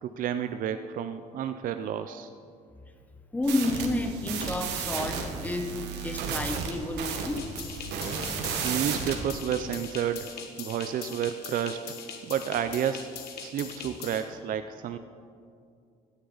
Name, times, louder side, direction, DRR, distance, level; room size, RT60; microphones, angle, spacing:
voice 1, 0.0-2.3 8.6-10.3 10.6-11.9 12.2-13.1 13.4-15.0, right 9 dB, 55° right, 9 dB, 0.5 m, -30 dB
voice 2, 3.3-7.5, left 2 dB, 10° left, 6 dB, 1.1 m, -30 dB
sound 1, 3.4-9.2, right 6 dB, 85° right, 1.5 m, -33 dB
sound 2, 7.4-14.2, left 7 dB, 70° left, 1.5 m, -42 dB
16.5 x 9.8 x 4.0 m, 2.3 s
cardioid pair, 110°, 17 cm